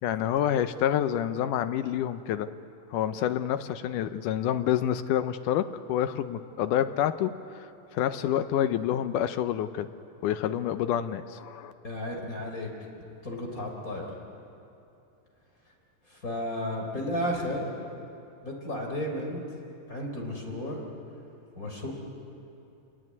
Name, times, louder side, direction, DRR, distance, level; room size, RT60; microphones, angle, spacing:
voice 1, 0.0-2.5 2.9-9.9 10.2-11.7, left 10 dB, 75° left, 10 dB, 2.1 m, -28 dB
voice 2, 11.8-12.7 13.2-14.1 16.1-17.7 18.4-19.4 19.9-20.8 21.6-21.9, left 1 dB, 25° left, 0 dB, 4.0 m, -33 dB
29.0 x 20.5 x 9.6 m, 2.7 s
omnidirectional pair, 4.0 m